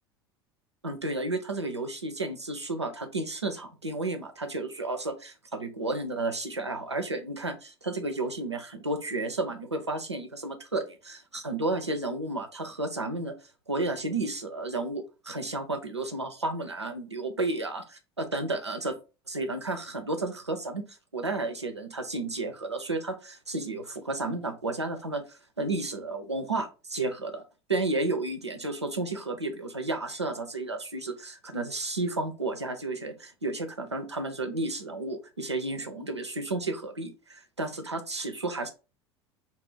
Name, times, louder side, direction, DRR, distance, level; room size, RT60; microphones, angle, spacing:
voice 1, 0.8-13.3 13.7-19.0 19.3-20.8 21.1-25.2 25.6-27.4 27.7-38.7, right 2 dB, 90° right, 6 dB, 0.4 m, -32 dB
2.3 x 2.3 x 3.2 m, 0.31 s
figure-of-eight pair, 75°, 14 cm